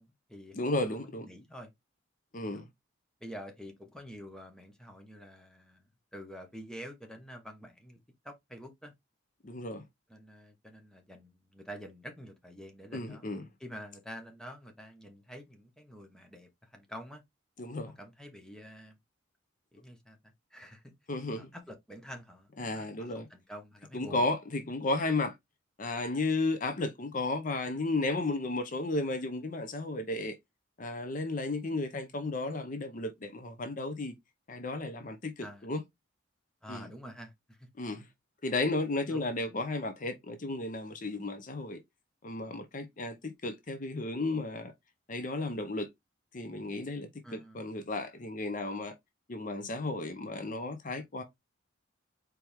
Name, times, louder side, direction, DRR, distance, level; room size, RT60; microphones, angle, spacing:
voice 1, 0.0-1.7 2.4-2.6 3.2-8.0 8.2-8.9 10.1-13.3 13.6-17.2 18.0-19.0 19.7-20.9 21.4-24.3 35.4-35.7 36.6-37.7 39.1-39.3 47.2-47.6, equal, 5° left, 1.0 m, -48 dB
voice 2, 0.5-1.3 2.3-2.7 9.4-9.8 12.9-13.4 17.6-17.9 21.1-21.5 22.6-23.3 23.9-25.3 25.8-30.4 30.8-34.1 34.5-35.8 36.7-36.9 37.8-38.1 38.4-41.8 42.2-44.7 45.1-45.9 46.3-48.9 49.3-51.2, left 2 dB, 40° left, 0.7 m, -33 dB
4.5 x 3.4 x 3.4 m
head